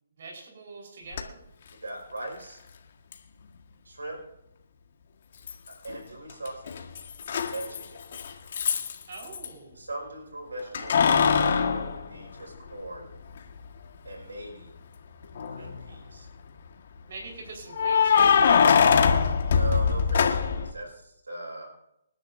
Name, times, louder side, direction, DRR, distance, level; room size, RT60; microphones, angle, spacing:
voice 1, 0.2-1.4 9.1-9.8 10.6-11.0 15.6-16.2 17.1-19.5, right 3 dB, 55° right, -1 dB, 4.5 m, -45 dB
Keys jangling, 1.1-1.2 3.1-3.2 5.5-6.0 6.3-9.5 10.7-12.9 13.4-13.5 15.2-15.8 17.7-20.7, left 6 dB, 55° left, 1.6 m, -22 dB
voice 2, 1.8-2.6 3.9-4.2 5.7-6.9 7.5-8.0 9.7-13.1 14.0-14.7 15.5-16.3 19.5-21.7, right 2 dB, 90° right, 1 dB, 5.3 m, -39 dB
27.0 x 10.5 x 2.7 m, 0.82 s
hypercardioid pair, 145°, 0 cm